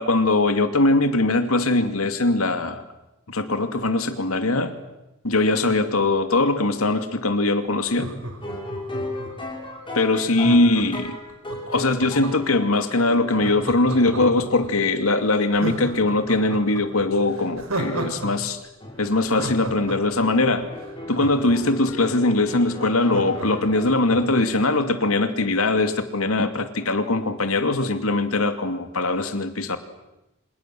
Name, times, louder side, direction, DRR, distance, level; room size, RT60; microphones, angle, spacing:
voice 1, 0.0-2.8 3.3-4.7 5.2-8.1 9.9-11.2 11.7-18.6 19.0-20.7 21.1-29.8, left 2 dB, 80° left, 8 dB, 2.7 m, -21 dB
Laughter, 7.8-9.5 10.4-12.6 13.3-14.7 15.1-15.2 15.5-18.3 18.6-18.7 19.0-22.0 22.4-22.5 22.7-24.4 24.8-24.9, right 1 dB, 85° right, 5.6 m, -33 dB
sound 1, 8.4-17.8 18.2-18.5 18.8-23.9, left 1 dB, 25° left, 5.9 m, -37 dB
28.5 x 26.5 x 7.9 m, 0.94 s
head